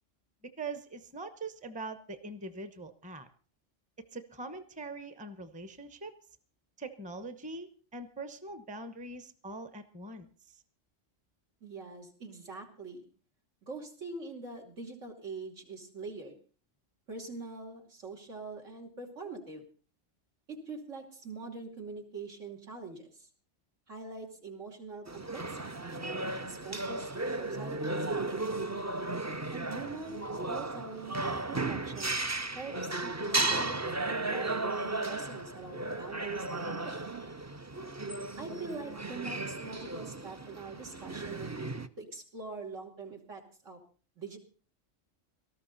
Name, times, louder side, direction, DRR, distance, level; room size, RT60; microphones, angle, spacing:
voice 1, 0.4-3.3 4.0-6.2 6.8-10.6, right 3 dB, 5° right, 11 dB, 0.9 m, -43 dB
voice 2, 11.6-13.1 13.6-16.4 17.1-19.6 20.5-23.3 23.9-28.0 28.3-28.7 29.5-32.2 32.5-37.1 38.4-43.8 44.2-44.4, right 3 dB, 75° right, 2 dB, 3.2 m, -44 dB
sound 1, 25.1-41.9, right 2 dB, 20° right, 0.4 m, -35 dB
18.5 x 13.5 x 4.1 m, 0.39 s
omnidirectional pair, 1.3 m